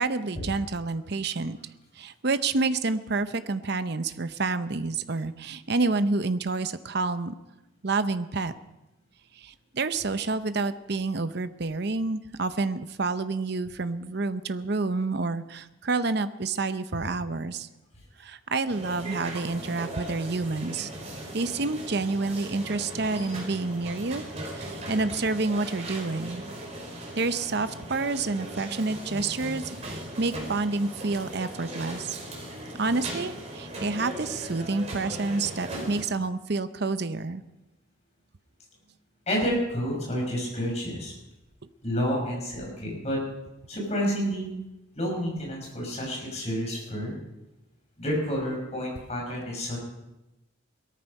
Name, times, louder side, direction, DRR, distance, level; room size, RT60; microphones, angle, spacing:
voice 1, 0.0-1.6 2.0-7.3 7.8-8.5 9.3-17.7 18.2-20.9 21.3-24.2 24.5-26.4 27.1-32.2 32.8-37.4, right 3 dB, 50° right, 12 dB, 0.7 m, -28 dB
sound 1, 18.7-36.0, right 1 dB, 30° right, 4.4 m, -38 dB
voice 2, 39.3-41.1 41.8-43.2 43.7-44.5 45.0-47.1 48.0-49.8, equal, 30° left, -1 dB, 5.8 m, -29 dB
18.5 x 13.5 x 5.4 m, 0.96 s
head